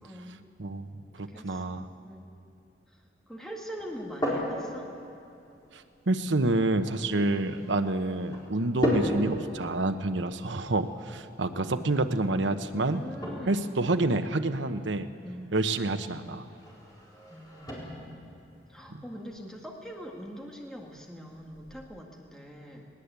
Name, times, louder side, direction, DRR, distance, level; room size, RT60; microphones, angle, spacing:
voice 1, 0.0-0.4 1.1-2.3 2.9-3.0 3.3-4.9 11.5-12.0 12.9-13.8 15.2-15.9 17.3-18.1 18.7-22.9, equal, 5° left, -1 dB, 1.9 m, -43 dB
voice 2, 0.6-0.9 1.2-1.8 5.7-13.0 13.5-15.1 15.5-16.5 18.9-19.0, right 2 dB, 85° right, 9 dB, 1.0 m, -28 dB
sound 1, 3.8-21.8, equal, 20° left, 4.5 m, -38 dB
20.5 x 19.0 x 8.2 m, 2.7 s
head